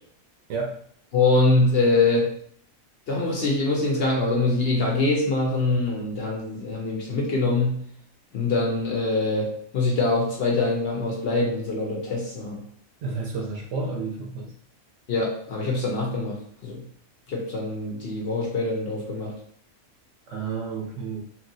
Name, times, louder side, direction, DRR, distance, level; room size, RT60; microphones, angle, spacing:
voice 1, 1.1-2.3 3.1-7.8 8.3-12.6 15.1-16.4 16.6-16.8 17.3-19.3, left 2 dB, 60° left, -2 dB, 0.7 m, -24 dB
voice 2, 13.0-14.5 20.3-21.2, right 4 dB, 65° right, 1 dB, 0.9 m, -31 dB
2.9 x 2.7 x 2.6 m, 0.63 s
omnidirectional pair, 1.4 m